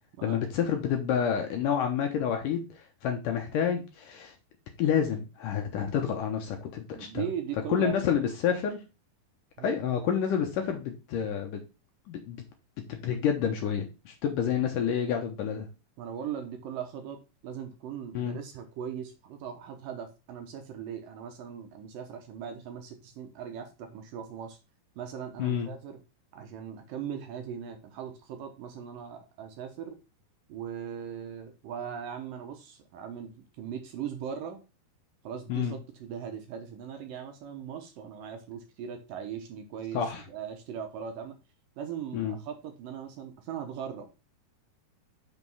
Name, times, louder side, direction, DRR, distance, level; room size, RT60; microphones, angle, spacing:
voice 1, 0.2-4.3 4.8-7.2 7.7-8.8 9.6-11.6 12.1-12.4 12.9-15.7 18.1-18.4 25.4-25.7 35.5-35.7 39.9-40.2 42.1-42.4, left 8 dB, 70° left, 4 dB, 2.2 m, -29 dB
voice 2, 6.9-8.2 9.6-9.9 16.0-24.6 25.0-26.0 26.3-30.0 30.5-34.6 35.2-41.4 41.8-44.2, right 8 dB, 70° right, 5 dB, 2.5 m, -39 dB
6.3 x 5.2 x 5.4 m, 0.29 s
omnidirectional pair, 4.6 m